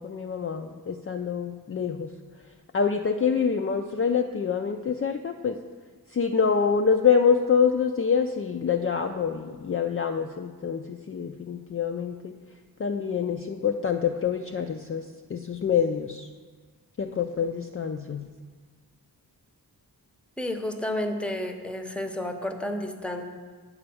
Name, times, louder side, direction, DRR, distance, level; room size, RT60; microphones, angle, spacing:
voice 1, 0.0-2.1 2.7-5.6 6.1-12.3 12.8-15.0 15.3-16.3 17.0-18.3, left 6 dB, 35° left, 4 dB, 0.4 m, -26 dB
voice 2, 20.4-23.2, left 1 dB, 5° left, 5 dB, 0.7 m, -31 dB
8.6 x 4.4 x 6.9 m, 1.5 s
wide cardioid pair, 70°, 38 cm